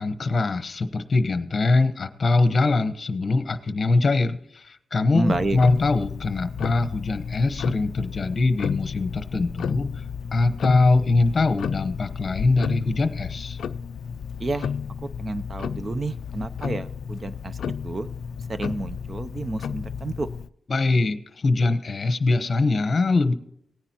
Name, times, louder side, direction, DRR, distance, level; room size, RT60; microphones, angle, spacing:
voice 1, 0.0-9.9 10.3-13.6 20.7-23.3, left 3 dB, 35° left, 11 dB, 0.9 m, -22 dB
voice 2, 5.1-5.6 14.4-14.7 15.0-18.1 18.5-20.3, right 2 dB, 25° right, 12 dB, 0.5 m, -30 dB
Tick-tock, 5.3-20.5, left 7 dB, 80° left, 0.3 m, -32 dB
18.5 x 9.9 x 2.9 m, 0.70 s
wide cardioid pair, 155°, 0 cm